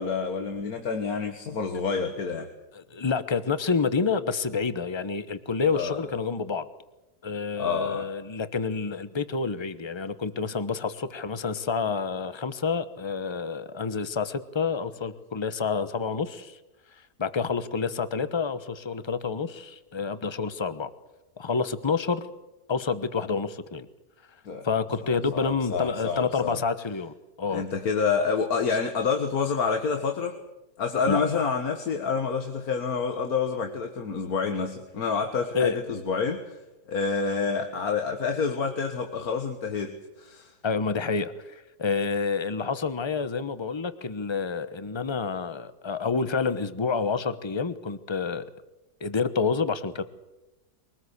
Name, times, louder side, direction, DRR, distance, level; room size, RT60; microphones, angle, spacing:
voice 1, 0.0-2.5 5.7-6.0 7.6-8.1 24.5-24.7 25.1-26.6 27.5-30.4 30.8-36.6 36.9-40.5, left 5 dB, 75° left, 6 dB, 1.9 m, -28 dB
voice 2, 2.7-6.7 7.2-16.6 17.2-20.9 21.4-22.2 22.7-23.9 24.6-27.6 31.1-31.5 35.5-35.8 40.6-48.5 49.0-50.0, left 5 dB, 20° left, 13 dB, 1.0 m, -28 dB
23.5 x 19.0 x 8.2 m, 0.99 s
omnidirectional pair, 1.6 m